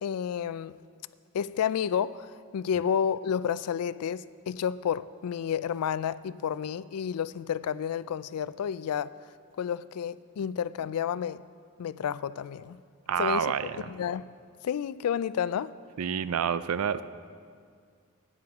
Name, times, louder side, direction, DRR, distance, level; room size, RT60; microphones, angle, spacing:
voice 1, 0.0-0.8 1.3-9.1 9.6-11.4 11.8-12.8 13.2-13.5 13.9-14.3 14.6-15.7, left 8 dB, 80° left, 0.3 m, -30 dB
voice 2, 13.1-13.9 16.0-17.0, right 7 dB, 75° right, 0.4 m, -28 dB
17.0 x 9.6 x 3.5 m
head